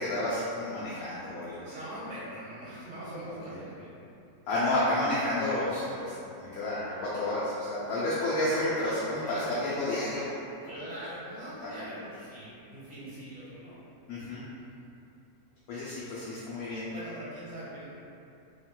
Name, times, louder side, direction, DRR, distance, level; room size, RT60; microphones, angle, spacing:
voice 1, 0.0-1.7 3.5-3.6 4.5-10.4 10.6-10.7 11.6-11.7 14.1-14.5 15.7-16.9, left 1 dB, 80° left, -10 dB, 1.0 m, -31 dB
voice 2, 1.7-3.9 8.8-10.1 10.6-13.8 14.3-14.4 16.0-16.2 16.9-17.9, right 1 dB, 35° right, -9 dB, 0.9 m, -42 dB
3.6 x 2.3 x 2.2 m, 2.7 s
omnidirectional pair, 1.6 m